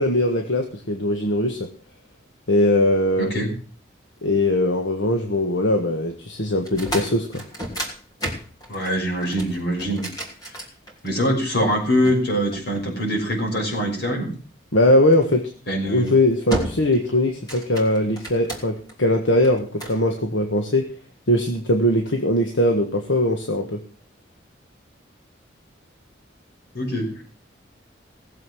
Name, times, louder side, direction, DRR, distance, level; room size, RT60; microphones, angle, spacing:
voice 1, 0.0-1.7 2.5-3.3 4.2-7.4 14.7-15.5 15.9-20.9 21.3-23.8, left 1 dB, 75° left, 4 dB, 1.6 m, -20 dB
voice 2, 3.2-3.5 8.7-10.0 11.0-14.3 15.7-16.1 26.7-27.2, equal, 55° left, 1 dB, 5.8 m, -23 dB
sound 1, 6.6-11.3 12.0-13.4 15.1-15.4 15.9-16.2 16.5-17.1 17.3-18.9 19.4-20.0, right 1 dB, 20° left, 3.1 m, -32 dB
18.0 x 7.6 x 6.3 m, 0.40 s
head